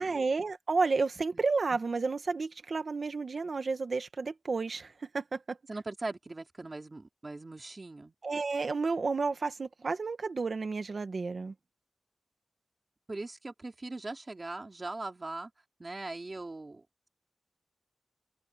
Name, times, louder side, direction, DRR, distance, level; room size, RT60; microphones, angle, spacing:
voice 1, 0.0-5.6 8.2-11.5, right 4 dB, 55° right, 1.7 m, -31 dB
voice 2, 5.7-8.1 13.1-15.5 15.8-17.1, right 2 dB, 30° right, 3.0 m, -40 dB
open air
wide cardioid pair, 130°, 0 cm